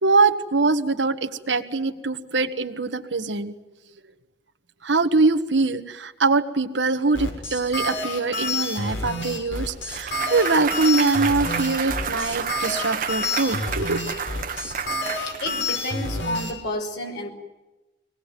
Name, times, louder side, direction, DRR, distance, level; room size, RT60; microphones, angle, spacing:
voice 1, 0.0-3.5 4.8-14.0, right 3 dB, 70° right, 7 dB, 1.6 m, -23 dB
sound 1, 7.1-16.5, left 2 dB, 85° left, 6.2 m, -29 dB
Clapping / Cheering / Applause, 9.6-15.8, right 6 dB, 50° right, 1.3 m, -31 dB
voice 2, 15.3-17.3, left 1 dB, 65° left, 3 dB, 5.3 m, -30 dB
24.5 x 18.5 x 9.3 m, 1.1 s
head